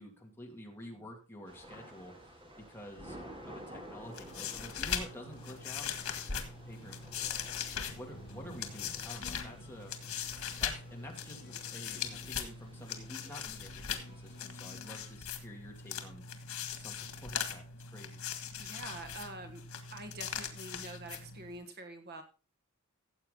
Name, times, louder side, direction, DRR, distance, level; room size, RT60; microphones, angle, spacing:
voice 1, 0.0-2.4 2.7-3.2 3.5-5.9 6.6-7.3 7.8-9.9 10.6-16.2 16.7-17.6 17.9-18.2, left 1 dB, 10° left, 0 dB, 2.4 m, -49 dB
Thunder / Rain, 1.5-14.4, right 1 dB, 25° right, 2.5 m, -53 dB
sound 1, 4.0-21.6, left 7 dB, 90° left, 1.7 m, -40 dB
sound 2, 7.7-15.2, left 3 dB, 50° left, 0.8 m, -56 dB
voice 2, 18.6-19.6 19.9-22.2, right 2 dB, 50° right, 7 dB, 1.3 m, -46 dB
14.5 x 7.7 x 3.8 m, 0.33 s
head